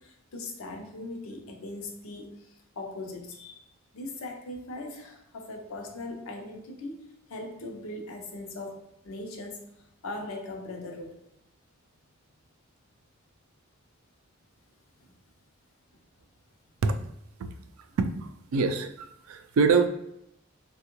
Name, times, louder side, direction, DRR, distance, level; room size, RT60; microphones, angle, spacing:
voice 1, 0.0-3.7 3.9-9.6 10.0-11.2 15.0-15.1, left 2 dB, 85° left, 2 dB, 0.6 m, -40 dB
voice 2, 18.5-19.9, right 4 dB, 90° right, 8 dB, 0.3 m, -24 dB
3.5 x 2.3 x 2.9 m, 0.80 s
head